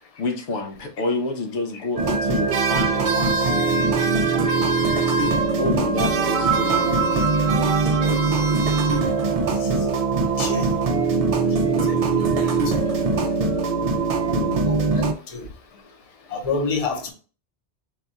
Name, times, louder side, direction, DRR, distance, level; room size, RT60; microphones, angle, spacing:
voice 1, 0.2-3.6 5.6-7.4 14.3-14.6, left 3 dB, 90° left, 4 dB, 1.1 m, -29 dB
sound 1, 2.0-15.1, right 4 dB, 55° right, 0.4 m, -22 dB
sound 2, 2.5-5.7 6.0-9.4, right 3 dB, 80° right, 0.9 m, -28 dB
sound 3, 6.2-10.8 11.7-11.8, right 8 dB, 5° right, 0.5 m, -29 dB
voice 2, 10.4-10.7 11.5-12.7 14.6-14.8 15.3-15.4 16.3-17.1, left 3 dB, 40° left, 3 dB, 0.7 m, -28 dB
4.1 x 2.3 x 3.9 m, 0.39 s
omnidirectional pair, 1.1 m